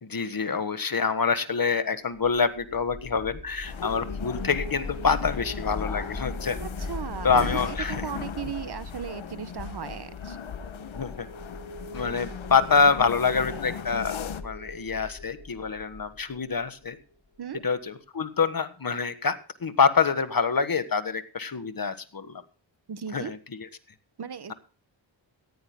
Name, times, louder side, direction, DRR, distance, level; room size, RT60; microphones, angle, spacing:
voice 1, 0.0-6.6 7.2-8.0 10.9-11.3 11.9-14.2 14.4-17.0 17.6-22.4 23.1-23.7, left 5 dB, 50° left, 11 dB, 1.5 m, -26 dB
sound 1, 2.2-17.3, left 2 dB, 30° left, 5.8 m, -40 dB
sound 2, 3.6-14.4, left 7 dB, 80° left, 1.1 m, -38 dB
voice 2, 6.6-10.4 17.4-17.6 22.9-23.3 24.2-24.5, right 7 dB, 55° right, 13 dB, 1.1 m, -36 dB
18.0 x 15.0 x 2.2 m, 0.38 s
wide cardioid pair, 80°, 46 cm